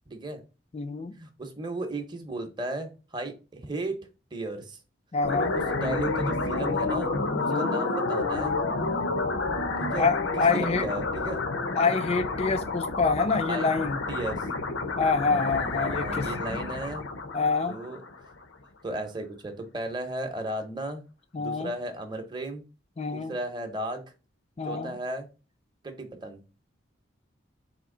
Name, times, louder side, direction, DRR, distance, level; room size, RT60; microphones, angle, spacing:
voice 1, 0.1-0.4 1.1-4.0 4.3-4.8 5.4-7.1 7.4-8.5 9.8-10.1 10.3-11.4 13.5-13.7 14.1-14.5 15.2-17.1 17.7-18.0 18.8-21.0 21.4-22.6 23.1-24.0 24.7-25.3 25.8-26.4, right 1 dB, 20° right, 0.7 m, -35 dB
voice 2, 0.7-1.2 5.1-5.5 7.5-7.7 10.0-10.9 11.8-14.0 15.0-16.3 16.5-16.6 17.3-17.8 21.3-21.7 23.0-23.3 24.6-24.9, left 4 dB, 30° left, 0.4 m, -26 dB
sound 1, 5.2-18.4, left 3 dB, 85° left, 0.8 m, -29 dB
4.4 x 2.8 x 3.7 m
head